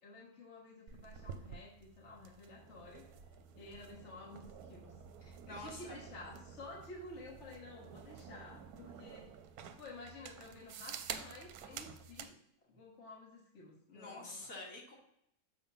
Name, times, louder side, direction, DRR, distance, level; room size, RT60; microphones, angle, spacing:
voice 1, 0.0-3.1 3.5-4.9 5.5-9.3 9.8-12.4 12.7-14.5, left 2 dB, 50° left, -2 dB, 1.4 m, -52 dB
sound 1, 0.9-12.3, right 7 dB, 75° right, 1.1 m, -50 dB
voice 2, 5.2-6.0 13.9-14.9, left 2 dB, 65° left, -3 dB, 2.2 m, -48 dB
6.7 x 3.5 x 5.6 m, 0.78 s
omnidirectional pair, 1.7 m